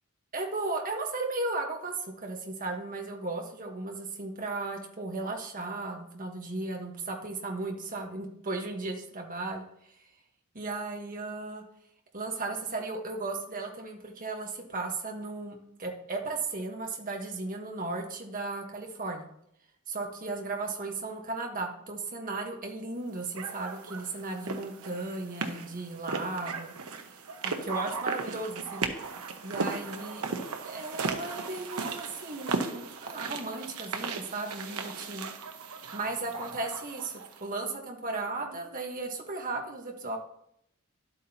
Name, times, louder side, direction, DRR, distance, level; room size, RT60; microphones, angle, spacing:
voice 1, 0.3-9.9 10.5-11.6 12.1-19.3 19.9-26.7 27.4-28.8 29.4-30.3 30.6-35.3 35.9-40.2, right 3 dB, 40° right, 1 dB, 1.4 m, -35 dB
sound 1, 23.3-37.4, right 4 dB, 90° right, 1.0 m, -36 dB
11.5 x 8.3 x 2.9 m, 0.74 s
head